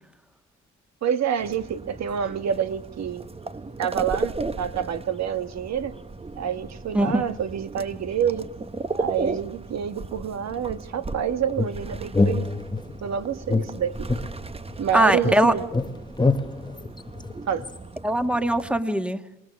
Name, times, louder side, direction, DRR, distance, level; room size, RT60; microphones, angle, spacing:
voice 1, 1.0-3.2 3.8-5.9 6.4-8.5 9.0-12.5 13.0-14.1 14.8-15.6 17.5-17.7, right 8 dB, 60° right, 10 dB, 1.4 m, -27 dB
sound 1, 1.4-18.8, right 3 dB, 20° right, 1.1 m, -36 dB
sound 2, 11.6-13.0 13.5-14.9 15.2-17.8, left 3 dB, 15° left, 1.1 m, -26 dB
voice 2, 14.9-15.5 18.0-19.2, right 1 dB, 5° right, 7 dB, 1.7 m, -21 dB
27.5 x 20.0 x 6.3 m, 0.93 s
cardioid pair, 90°, 30 cm